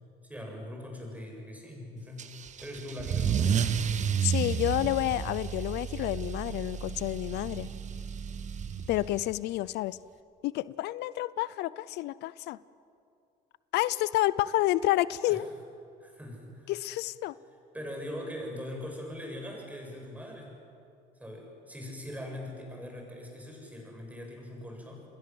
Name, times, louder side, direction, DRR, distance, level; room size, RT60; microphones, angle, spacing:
voice 1, 0.3-2.2 2.6-3.7 15.3-15.4 16.0-16.7 17.7-20.5 21.2-25.0, left 1 dB, 10° right, 0 dB, 7.5 m, -41 dB
Car / Engine starting / Accelerating revving vroom, 2.2-9.4, right 7 dB, 45° right, 1.4 m, -31 dB
voice 2, 4.2-7.7 8.9-10.0 10.4-12.6 13.7-15.5 16.7-17.4, left 16 dB, 80° left, 19 dB, 0.5 m, -29 dB
29.5 x 21.5 x 7.8 m, 2.6 s
cardioid pair, 110°, 17 cm